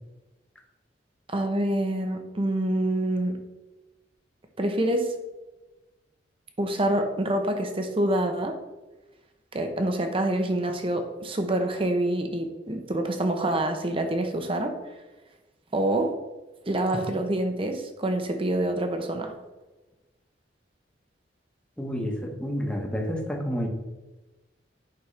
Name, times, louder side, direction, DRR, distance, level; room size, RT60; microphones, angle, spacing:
voice 1, 1.3-3.4 4.6-5.2 6.6-8.6 9.5-14.8 15.7-16.2 16.7-19.4, right 1 dB, 30° right, 6 dB, 0.8 m, -26 dB
voice 2, 21.8-23.7, equal, 5° left, -1 dB, 1.2 m, -29 dB
9.8 x 5.3 x 3.3 m, 1.1 s
head